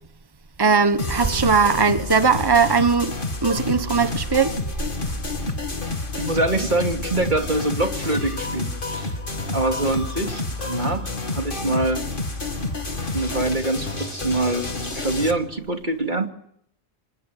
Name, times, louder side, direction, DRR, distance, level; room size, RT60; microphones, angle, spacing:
voice 1, 0.6-3.1 3.4-4.5, right 5 dB, 20° right, 1.3 m, -19 dB
sound 1, 1.0-15.3, left 3 dB, 50° left, 2.5 m, -29 dB
voice 2, 6.2-9.1 9.5-12.0 13.1-14.7 14.9-16.3, right 2 dB, 45° right, 2.9 m, -24 dB
27.0 x 21.0 x 9.2 m
omnidirectional pair, 1.2 m